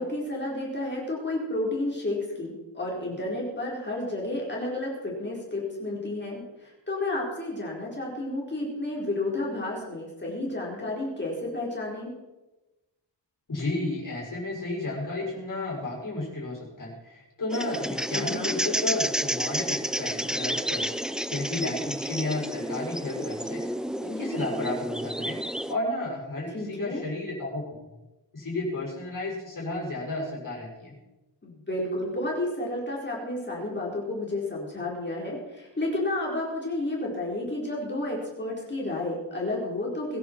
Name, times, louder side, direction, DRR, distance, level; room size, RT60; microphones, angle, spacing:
voice 1, 0.0-12.1 18.1-18.6 26.5-27.1 31.4-40.2, left 2 dB, 25° left, -4 dB, 4.4 m, -31 dB
voice 2, 13.5-23.6 24.0-25.4 25.7-27.7 28.3-30.9, left 2 dB, 45° left, -3 dB, 6.3 m, -32 dB
sound 1, 17.5-25.7, equal, ahead, 0.5 m, -30 dB
22.0 x 10.5 x 4.6 m, 1.0 s
wide cardioid pair, 125°, 42 cm